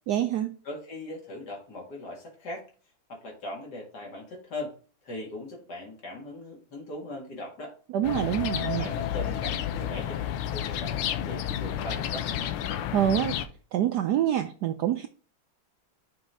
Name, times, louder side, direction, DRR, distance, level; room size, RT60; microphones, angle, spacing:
voice 1, 0.1-0.5 7.9-8.9 12.9-13.3 13.7-15.1, right 11 dB, 85° right, 8 dB, 0.9 m, -26 dB
voice 2, 0.6-2.7 3.1-4.7 5.0-7.7 8.8-10.2 10.5-12.3, left 1 dB, 50° left, 0 dB, 2.5 m, -39 dB
sound 1, 8.0-13.5, left 10 dB, 85° left, 1.6 m, -31 dB
6.1 x 4.4 x 4.7 m, 0.39 s
omnidirectional pair, 2.3 m